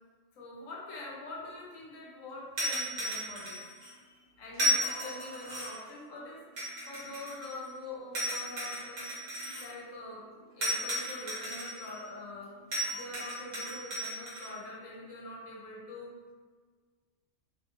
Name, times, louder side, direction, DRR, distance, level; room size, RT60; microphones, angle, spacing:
voice 1, 0.3-6.4 6.9-9.0 9.5-10.2 10.5-12.5 12.9-16.1, left 2 dB, 90° left, -4 dB, 1.1 m, -44 dB
sound 1, 2.6-3.9 4.5-5.9 6.6-7.7 8.1-9.7 10.6-12.0 12.7-14.5, equal, 80° right, 1.4 m, -34 dB
3.2 x 2.8 x 2.5 m, 1.5 s
omnidirectional pair, 1.3 m